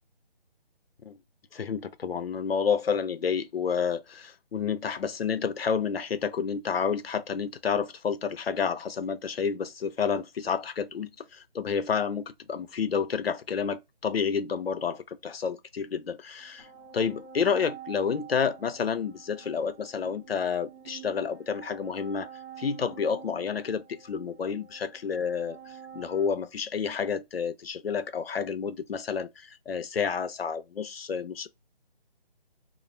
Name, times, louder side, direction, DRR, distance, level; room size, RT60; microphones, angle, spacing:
voice 1, 1.5-16.7 16.9-22.3 22.6-25.6 25.9-31.5, left 6 dB, 70° left, 0.6 m, -30 dB
sound 1, 16.4-26.3, right 8 dB, 20° right, 0.7 m, -48 dB
2.5 x 2.3 x 3.0 m
figure-of-eight pair, 170°, 31 cm